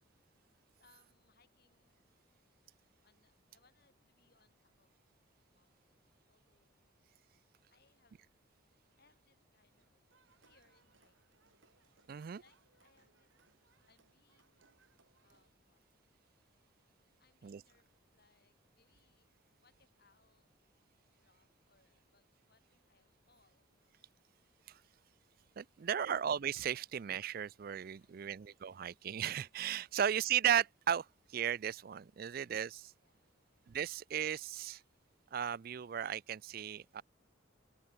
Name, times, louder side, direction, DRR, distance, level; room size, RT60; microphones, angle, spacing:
voice 1, 0.8-2.1 2.5-2.7 3.0-4.9 5.5-6.9 7.7-10.1 10.4-11.2 12.4-13.3 13.9-14.9 15.2-15.8 17.2-19.3 19.6-20.5 21.1-24.2 25.8-26.2 28.0-28.5 30.0-30.3 32.3-33.6, left 4 dB, 50° left, 6.9 m, -74 dB
sound 1, 10.1-15.5, right 4 dB, 70° right, 5.2 m, -71 dB
voice 2, 12.1-12.4 17.4-17.6 24.7-24.8 25.6-32.9 33.7-34.8 35.3-37.0, right 9 dB, 45° right, 0.3 m, -35 dB
open air
head